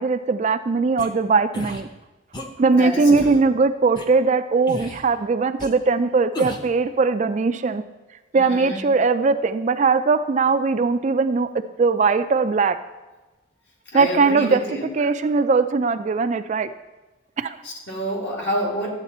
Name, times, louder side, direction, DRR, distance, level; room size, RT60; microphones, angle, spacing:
voice 1, 0.0-1.9 2.6-7.8 8.3-11.5 11.8-12.8 13.9-14.6 15.0-16.7 17.4-17.6, right 4 dB, 35° right, 10 dB, 0.3 m, -20 dB
sound 1, 1.0-1.1 1.5-1.8 2.3-2.5 3.1-3.4 4.0-4.1 4.7-5.0 5.6-5.7 6.3-6.7, left 1 dB, 20° left, 0.8 m, -33 dB
voice 2, 2.7-3.4 8.3-8.9 13.9-14.9 17.6-18.9, equal, 60° left, -2 dB, 2.3 m, -28 dB
11.5 x 8.1 x 4.2 m, 1.1 s
head